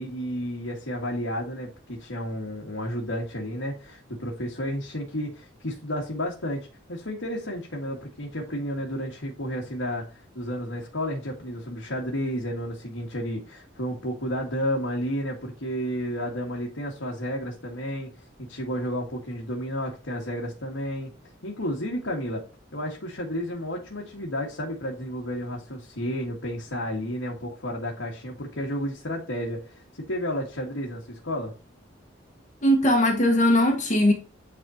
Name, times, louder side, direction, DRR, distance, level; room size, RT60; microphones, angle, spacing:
voice 1, 0.0-18.1 18.4-21.1 21.4-22.4 22.7-31.5, equal, 85° left, 1.8 m, -32 dB
voice 2, 32.6-34.1, left 1 dB, 40° left, 1.3 m, -20 dB
9.8 x 4.2 x 2.8 m
head